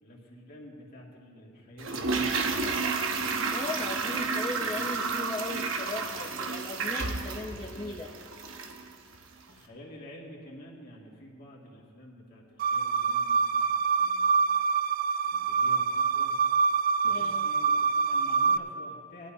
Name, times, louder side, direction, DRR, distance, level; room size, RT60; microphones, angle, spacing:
voice 1, 0.0-2.5 9.5-14.3 15.2-16.3 17.0-19.3, left 1 dB, 40° left, -3 dB, 2.3 m, -49 dB
Toilet flush, 1.8-8.9 9.1-9.2, right 4 dB, 60° right, 0.9 m, -31 dB
voice 2, 3.5-8.1 17.0-17.5, left 2 dB, 20° left, -3 dB, 0.7 m, -37 dB
sound 1, 12.6-18.6, right 5 dB, 40° right, 0.3 m, -25 dB
19.5 x 11.5 x 2.8 m, 2.4 s
head